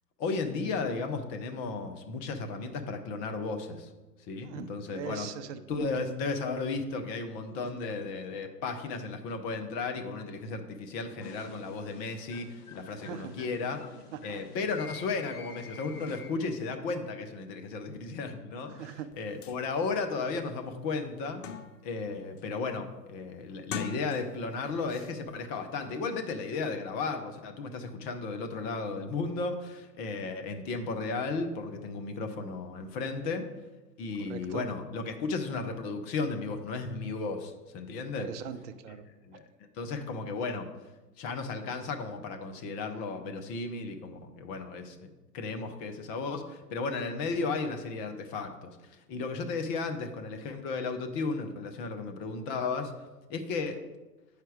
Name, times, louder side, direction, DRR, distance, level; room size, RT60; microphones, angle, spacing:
voice 1, 0.2-3.9 4.2-5.3 5.7-13.8 14.2-21.4 21.8-33.4 34.0-38.3 39.2-39.4 39.7-40.7 41.2-45.1 45.3-53.8, left 4 dB, 20° left, 6 dB, 0.5 m, -34 dB
voice 2, 4.4-5.9 7.6-7.7 12.9-13.3 14.1-14.4 18.7-19.2 34.3-34.7 38.0-39.1, right 8 dB, 50° right, 8 dB, 0.7 m, -41 dB
sound 1, 11.2-16.6, left 5 dB, 70° left, 1.1 m, -48 dB
sound 2, 19.1-19.2 19.4-19.6 20.1-20.2 20.6-22.0 22.4-22.7 23.5-24.5 24.9-25.1, left 7 dB, 50° left, 0.7 m, -41 dB
8.9 x 4.9 x 4.6 m, 1.1 s
hypercardioid pair, 115°, 48 cm